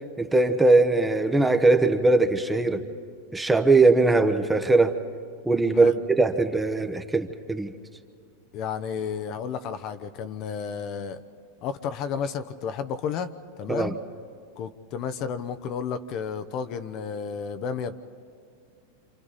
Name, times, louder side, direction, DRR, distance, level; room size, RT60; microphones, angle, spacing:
voice 1, 0.2-2.8 3.3-5.0 5.5-7.7 13.7-13.9, right 3 dB, 10° right, 8 dB, 1.1 m, -20 dB
voice 2, 8.5-11.2 11.6-13.3 13.6-13.9 14.6-17.9, left 7 dB, 45° left, 10 dB, 0.9 m, -32 dB
27.5 x 27.5 x 4.2 m, 2.2 s
hypercardioid pair, 120°, 0 cm